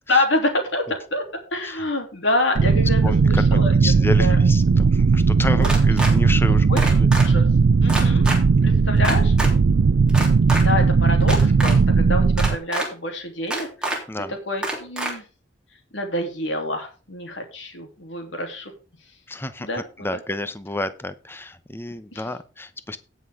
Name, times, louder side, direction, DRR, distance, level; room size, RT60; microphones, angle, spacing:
voice 1, 0.1-1.2 1.5-3.9 4.2-4.4 5.5-5.7 6.7-6.8 7.2-7.4 7.8-8.3 8.6-9.3 10.6-14.0 14.5-15.2 15.9-18.7 19.6-19.9 20.1-20.2 22.1-22.3, left 1 dB, 80° left, 3 dB, 3.2 m, -26 dB
sound 1, 2.6-12.6, right 4 dB, 70° right, 0.4 m, -17 dB
voice 2, 3.0-7.1 7.9-8.2 10.5-10.6 14.1-14.3 19.3-23.0, left 2 dB, 10° left, 12 dB, 0.8 m, -31 dB
sound 2, 5.6-6.1 6.8-7.3 7.9-8.4 9.0-9.5 10.1-10.6 11.2-11.7 12.4-12.9 13.5-14.0 14.6-15.1, right 1 dB, 5° right, 3.1 m, -26 dB
17.5 x 6.1 x 3.7 m, 0.34 s
head